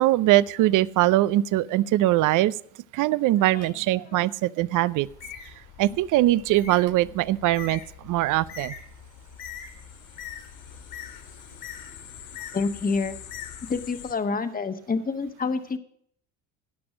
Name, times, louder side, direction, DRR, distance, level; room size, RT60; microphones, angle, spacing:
voice 1, 0.0-2.5 2.9-5.1 5.8-8.7, right 15 dB, 50° right, 20 dB, 0.6 m, -22 dB
voice 2, 3.4-4.2 12.5-13.1 13.7-15.8, left 4 dB, 20° left, 9 dB, 1.3 m, -28 dB
Bird, 5.0-14.1, left 8 dB, 70° left, 3.0 m, -43 dB
sound 1, 8.8-14.1, left 10 dB, 85° left, 1.6 m, -47 dB
16.5 x 6.0 x 6.3 m, 0.66 s
hypercardioid pair, 75°, 40 cm